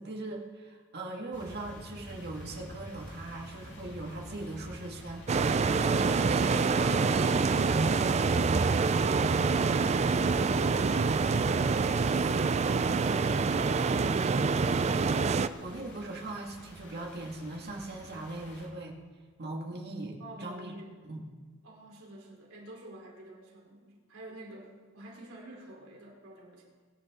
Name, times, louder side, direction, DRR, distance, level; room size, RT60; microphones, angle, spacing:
voice 1, 0.0-8.1 15.6-19.0 19.4-20.7 21.0-21.2, right 2 dB, 50° right, -1 dB, 2.2 m, -40 dB
sound 1, 1.3-18.7, equal, 55° left, 2.9 m, -49 dB
sound 2, 5.3-15.5, right 4 dB, 30° right, 0.4 m, -26 dB
voice 2, 20.2-21.0 21.6-26.6, right 1 dB, 70° right, -3 dB, 4.2 m, -48 dB
23.5 x 10.5 x 3.9 m, 1.5 s
head